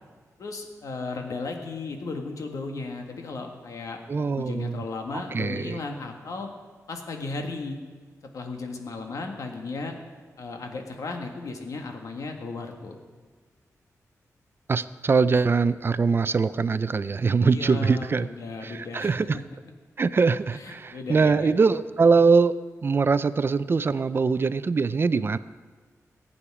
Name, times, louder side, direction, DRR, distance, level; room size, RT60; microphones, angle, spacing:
voice 1, 0.4-6.5 6.9-7.8 8.3-9.9 10.4-13.0 17.4-19.4 20.5-21.5, left 3 dB, 70° left, 3 dB, 1.8 m, -35 dB
voice 2, 4.1-4.8 5.3-5.8 14.7-18.3 18.6-19.4 20.0-25.4, right 4 dB, 40° right, 14 dB, 0.4 m, -22 dB
21.0 x 8.6 x 4.9 m, 1.5 s
wide cardioid pair, 100°, 6 cm